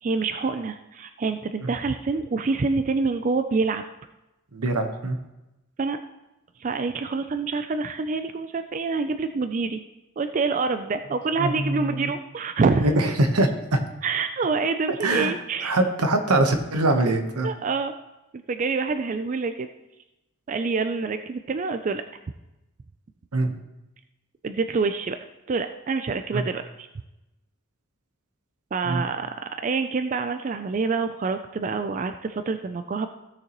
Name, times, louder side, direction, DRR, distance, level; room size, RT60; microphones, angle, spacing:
voice 1, 0.0-3.8 5.8-6.0 6.6-9.8 10.2-12.9 14.0-15.7 17.4-17.9 18.5-19.7 20.5-22.0 24.4-25.2 25.5-26.9 28.7-33.1, right 4 dB, 35° right, 8 dB, 0.3 m, -26 dB
voice 2, 4.5-5.2 11.4-12.1 12.8-13.8 15.0-15.3 15.6-17.5 23.3-23.5 26.3-26.4 28.8-29.0, right 2 dB, 85° right, 6 dB, 1.1 m, -23 dB
15.5 x 6.7 x 3.0 m, 0.97 s
head